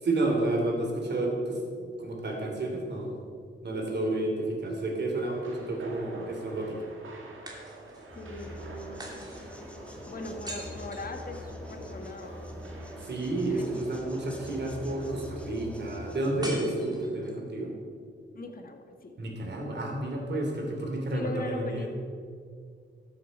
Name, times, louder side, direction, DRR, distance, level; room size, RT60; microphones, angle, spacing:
voice 1, 0.0-1.6 2.0-3.2 3.6-6.9 13.0-17.7 19.2-21.9, right 2 dB, 60° right, 0 dB, 3.0 m, -30 dB
sound 1, 4.4-5.4 7.5-8.2 9.0-11.8 16.4-17.5, right 1 dB, 20° right, 2.9 m, -44 dB
sound 2, 5.2-15.2, right 2 dB, 80° right, 2.2 m, -49 dB
voice 2, 8.1-9.1 10.1-12.5 13.4-13.9 18.3-19.2 21.1-21.9, left 3 dB, 45° left, 4 dB, 1.6 m, -40 dB
sound 3, 8.1-16.5, left 1 dB, 5° left, 1.5 m, -43 dB
13.5 x 7.8 x 5.4 m, 2.2 s
cardioid pair, 80°, 20 cm